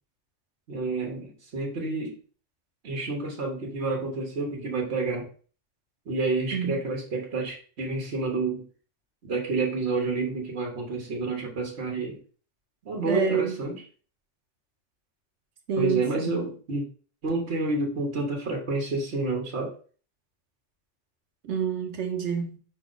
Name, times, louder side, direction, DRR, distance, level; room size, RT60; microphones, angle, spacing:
voice 1, 0.7-2.2 2.8-5.3 6.1-8.6 9.2-12.2 12.8-13.8 15.8-16.8 17.2-19.7, right 3 dB, 70° right, 1.3 m, -29 dB
voice 2, 13.0-13.5 15.7-16.4 21.4-22.6, right 6 dB, 90° right, 1.2 m, -27 dB
4.8 x 2.9 x 3.9 m
omnidirectional pair, 1.2 m